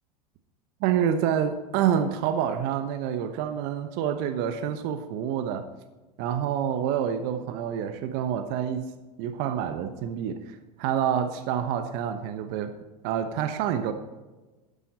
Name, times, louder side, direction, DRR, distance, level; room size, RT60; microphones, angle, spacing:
voice 1, 0.8-5.7 6.2-8.9 9.2-12.8 13.0-13.9, right 9 dB, 55° right, 9 dB, 1.0 m, -27 dB
12.5 x 10.0 x 4.2 m, 1.2 s
hypercardioid pair, 85°, 20 cm